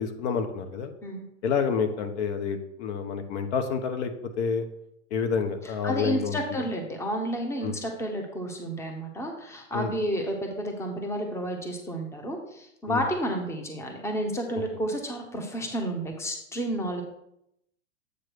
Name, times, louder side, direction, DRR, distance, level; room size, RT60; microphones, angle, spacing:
voice 1, 0.0-0.9 1.4-4.1 4.4-4.6 5.1-6.4 7.6-7.7 9.7-9.9 12.9-13.0, left 6 dB, 55° left, 7 dB, 1.1 m, -28 dB
voice 2, 5.8-17.0, equal, 5° left, 3 dB, 1.0 m, -31 dB
8.2 x 3.2 x 6.1 m, 0.77 s
hypercardioid pair, 115°, 40 cm